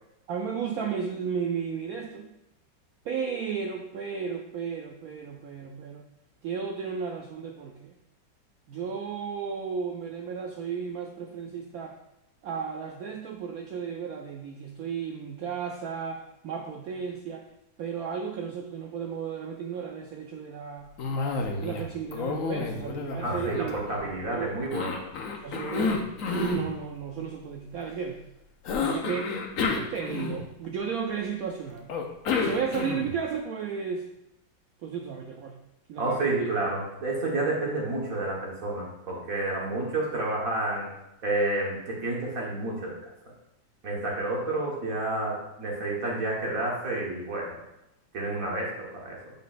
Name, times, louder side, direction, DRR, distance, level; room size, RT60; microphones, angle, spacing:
voice 1, 0.3-2.3 3.0-6.1 6.4-8.0 8.7-12.0 12.4-17.5 17.8-20.9 21.6-24.5 25.4-26.0 26.3-28.2 28.8-29.3 29.7-31.9 32.4-34.1 34.8-35.6 35.9-36.5, right 6 dB, 80° right, 3 dB, 0.8 m, -34 dB
Cough, 21.0-21.8 22.1-24.2 24.7-26.7 28.6-30.7 31.9-33.2, left 4 dB, 60° left, 0.9 m, -30 dB
voice 2, 23.2-25.1 36.0-40.9 41.2-43.1 43.8-47.6 48.1-49.2, right 2 dB, 50° right, -3 dB, 1.8 m, -30 dB
7.8 x 5.3 x 2.5 m, 0.89 s
omnidirectional pair, 2.1 m